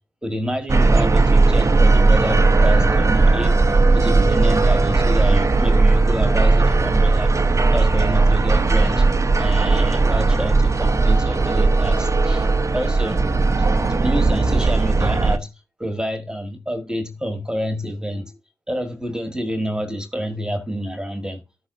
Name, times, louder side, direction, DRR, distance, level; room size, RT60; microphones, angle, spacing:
voice 1, 0.2-3.5 3.9-7.3 7.7-9.1 9.4-12.5 12.7-13.2 13.9-15.5 15.8-18.4 18.7-21.4, equal, 10° right, 1.7 m, -28 dB
sound 1, 0.7-15.4, right 3 dB, 35° right, 0.8 m, -17 dB
13.5 x 6.3 x 2.6 m
cardioid pair, 50°, 9 cm